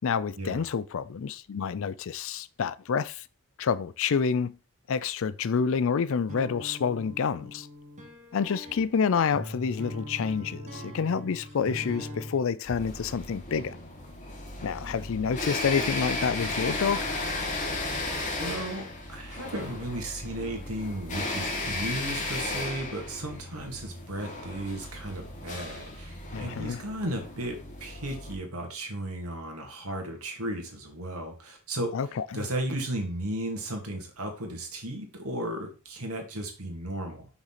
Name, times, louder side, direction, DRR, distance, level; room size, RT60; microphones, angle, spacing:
voice 1, 0.0-3.2 3.6-4.6 4.9-7.7 8.3-13.8 14.6-17.1 26.3-26.8 31.9-32.5, left 6 dB, 60° left, 0.4 m, -28 dB
sound 1, 6.3-12.4, equal, 35° right, 1.5 m, -41 dB
sound 2, 12.6-28.3, left 2 dB, 35° left, 1.6 m, -35 dB
voice 2, 18.4-32.0 32.3-37.3, right 1 dB, 80° right, 2.1 m, -35 dB
5.9 x 3.9 x 5.8 m
head